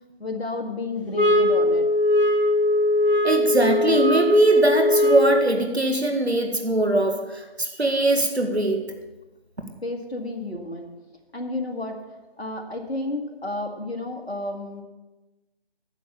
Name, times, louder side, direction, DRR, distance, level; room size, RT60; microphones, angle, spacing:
voice 1, 0.2-1.9 9.8-11.0 11.3-14.8, left 2 dB, 80° left, 2 dB, 1.6 m, -31 dB
sound 1, 1.1-5.5, left 1 dB, 55° left, 1.3 m, -20 dB
voice 2, 3.2-8.8, right 2 dB, 90° right, 4 dB, 1.8 m, -21 dB
9.2 x 6.8 x 7.2 m, 1.1 s
figure-of-eight pair, 160°, 32 cm